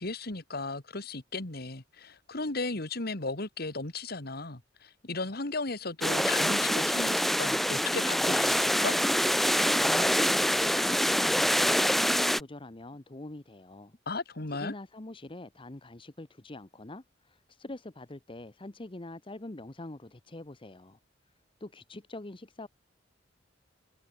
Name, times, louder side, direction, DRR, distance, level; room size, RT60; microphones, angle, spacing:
voice 1, 0.0-9.0 14.1-14.7, left 3 dB, 55° left, 2.4 m, -35 dB
sound 1, 6.0-12.4, equal, ahead, 0.4 m, -25 dB
voice 2, 9.8-14.0 14.5-21.0 21.6-22.7, left 2 dB, 30° left, 1.0 m, -44 dB
head